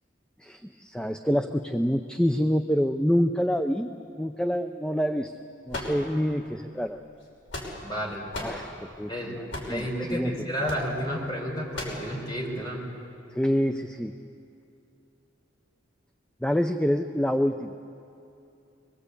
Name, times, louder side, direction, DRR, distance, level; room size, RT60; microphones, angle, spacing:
voice 1, 0.4-3.9 4.2-5.3 5.7-7.0 8.4-9.4 9.7-10.5 13.3-14.1 16.4-17.8, equal, 5° left, 7 dB, 0.5 m, -26 dB
sound 1, 5.7-6.5 7.2-8.0 8.3-8.6 9.5-9.8 10.6-10.9 11.7-12.1, left 2 dB, 75° left, 5.6 m, -35 dB
voice 2, 7.8-8.2 9.1-9.4 9.7-12.8, equal, 20° left, -1 dB, 5.1 m, -31 dB
24.5 x 22.5 x 8.3 m, 2.7 s
head